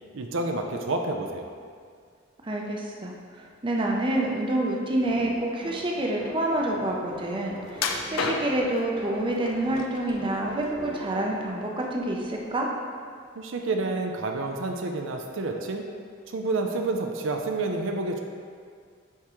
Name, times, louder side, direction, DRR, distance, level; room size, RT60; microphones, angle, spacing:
voice 1, 0.1-1.5 13.4-15.8 16.3-18.2, right 3 dB, 70° right, 3 dB, 0.5 m, -29 dB
voice 2, 2.4-3.1 3.6-12.7, right 1 dB, 25° right, -1 dB, 0.5 m, -27 dB
sound 1, 5.0-12.5, equal, 15° left, 1.1 m, -43 dB
sound 2, 7.7-8.8 9.5-10.1 10.5-11.4 11.8-12.0 12.5-12.6, left 4 dB, 75° left, 0.5 m, -31 dB
8.9 x 3.6 x 3.0 m, 2.1 s
head